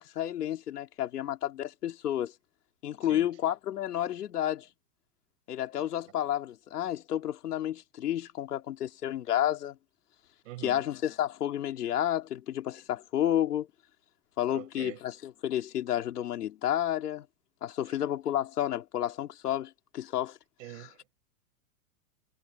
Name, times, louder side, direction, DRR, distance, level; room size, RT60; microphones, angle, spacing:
voice 1, 0.0-2.3 2.8-4.7 5.5-9.8 10.6-13.7 14.4-17.3 17.6-20.4 20.7-20.9, left 11 dB, 90° left, 2.6 m, -31 dB
voice 2, 10.4-10.8 14.5-15.0 20.6-21.1, right 17 dB, 55° right, 5.7 m, -44 dB
supercardioid pair, 155°, 45 cm